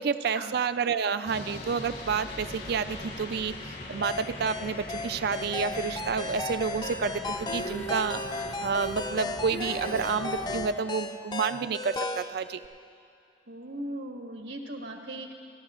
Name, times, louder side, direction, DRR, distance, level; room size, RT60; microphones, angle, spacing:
voice 1, 0.0-8.2 8.6-12.6, right 5 dB, 60° right, 12 dB, 0.4 m, -29 dB
sound 1, 1.3-10.7, left 2 dB, 60° left, 1.8 m, -41 dB
sound 2, 4.0-12.3, left 3 dB, 25° left, 0.5 m, -35 dB
Female singing, 7.4-10.7 12.6-12.7, right 1 dB, 80° left, 1.4 m, -38 dB
voice 2, 13.5-15.3, right 1 dB, 90° right, 2 dB, 1.5 m, -38 dB
28.0 x 13.5 x 2.5 m, 2.5 s
head